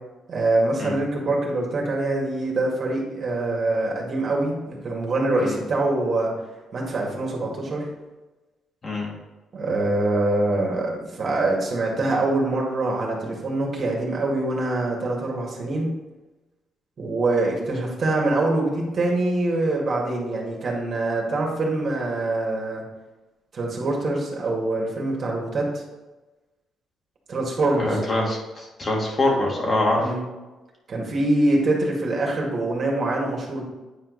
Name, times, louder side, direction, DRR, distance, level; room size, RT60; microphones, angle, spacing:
voice 1, 0.3-6.3 6.7-7.9 9.5-15.9 17.0-22.8 23.5-25.8 27.3-27.9 30.0-30.2 30.9-33.6, right 2 dB, 50° right, -2 dB, 2.2 m, -24 dB
voice 2, 8.8-9.1 27.7-30.1, left 1 dB, 35° left, -2 dB, 2.3 m, -24 dB
9.2 x 4.5 x 4.1 m, 1.1 s
cardioid pair, 90°, 0 cm